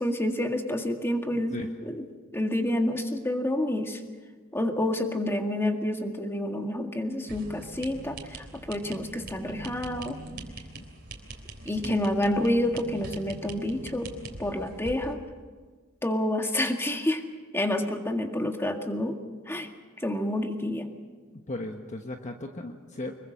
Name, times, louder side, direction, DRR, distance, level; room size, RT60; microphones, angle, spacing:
voice 1, 0.0-1.5 1.8-2.0 2.3-4.0 4.5-10.2 11.7-14.1 14.4-15.2 16.0-17.2 17.5-19.1 19.5-19.7 20.0-20.9, left 1 dB, 10° left, 4 dB, 1.9 m, -28 dB
voice 2, 1.3-1.7 10.7-10.9 11.7-12.0 21.5-23.2, left 2 dB, 35° left, 4 dB, 1.2 m, -36 dB
sound 1, 7.3-15.1, right 2 dB, 50° right, 3.6 m, -42 dB
25.5 x 22.5 x 6.5 m, 1.4 s
head